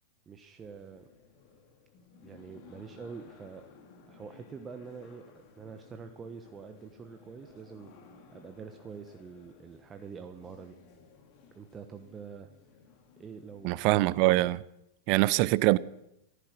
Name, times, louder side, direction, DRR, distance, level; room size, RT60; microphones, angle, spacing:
voice 1, 0.3-1.1 2.2-3.6 4.1-5.2 5.5-7.9 8.3-10.8 11.5-12.5 13.2-13.7, right 5 dB, 25° right, 1.2 m, -45 dB
sound 1, 0.6-14.5, left 5 dB, 50° left, 2.9 m, -57 dB
voice 2, 13.6-14.6 15.1-15.8, right 19 dB, 50° right, 0.6 m, -23 dB
14.5 x 14.5 x 6.3 m
figure-of-eight pair, 95°, 0 cm